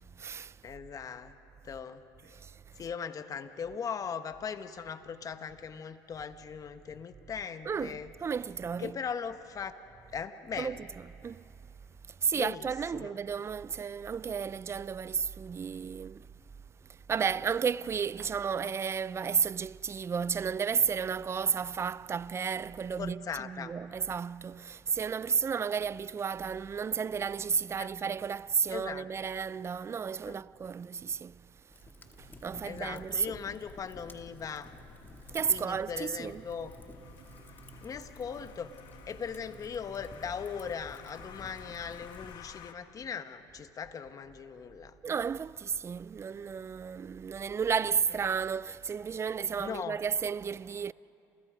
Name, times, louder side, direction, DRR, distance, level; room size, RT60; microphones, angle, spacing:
voice 1, 0.0-0.6 2.3-2.6 7.6-9.0 10.6-10.8 11.2-11.4 12.1-16.3 16.9-31.5 32.2-33.4 35.3-36.4 45.0-50.9, right 6 dB, 30° right, 0.5 m, -33 dB
voice 2, 0.6-1.3 1.6-2.0 2.8-8.1 8.8-9.7 10.1-10.8 12.3-12.7 12.9-13.1 23.0-23.7 27.8-27.9 28.7-29.1 30.2-30.4 32.6-34.7 35.5-36.7 37.8-38.7 39.1-44.9 49.6-50.0, left 6 dB, 40° left, 1.4 m, -39 dB
Fire, 31.7-42.4, left 3 dB, 25° left, 2.3 m, -54 dB
sound 1, 32.0-42.1, right 6 dB, 60° right, 1.8 m, -58 dB
sound 2, 32.2-42.7, left 8 dB, 65° left, 1.6 m, -53 dB
29.5 x 28.5 x 5.2 m
supercardioid pair, 80°, 9 cm